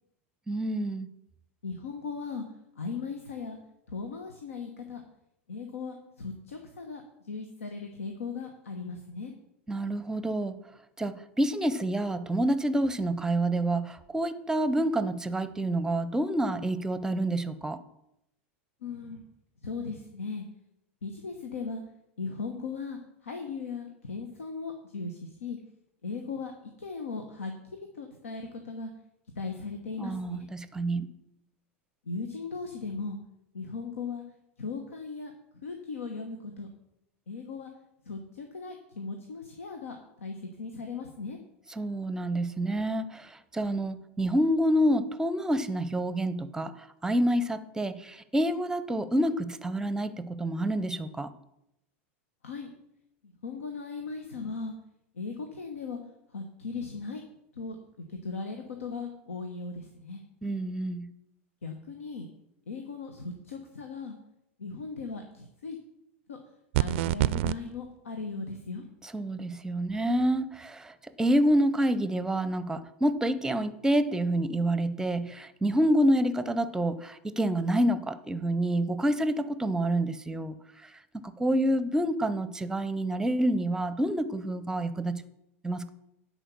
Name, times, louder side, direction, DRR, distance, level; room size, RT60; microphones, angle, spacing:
voice 1, 0.5-1.1 9.7-10.6 11.0-17.8 30.0-31.1 41.8-46.7 47.0-51.3 60.4-61.1 69.0-80.6 81.1-85.2 85.6-85.9, right 1 dB, 10° right, 14 dB, 0.7 m, -28 dB
voice 2, 1.6-2.4 2.8-3.6 3.9-5.0 5.5-7.0 7.3-9.3 18.8-19.2 19.6-20.4 21.0-21.8 22.2-23.0 23.2-25.6 26.0-26.5 26.8-27.5 27.9-28.9 29.4-30.4 32.1-33.2 33.5-34.2 34.6-35.3 35.6-36.7 37.3-37.7 38.1-41.4 52.4-52.7 53.4-54.7 55.2-56.0 56.3-57.2 57.6-57.8 58.1-60.2 61.6-62.3 62.7-64.1 64.6-65.8 66.3-66.4 66.8-68.8, left 4 dB, 85° left, 4 dB, 1.0 m, -37 dB
sound 1, 66.7-67.6, right 17 dB, 60° right, 0.4 m, -25 dB
10.0 x 4.5 x 7.0 m, 0.82 s
hypercardioid pair, 95°, 7 cm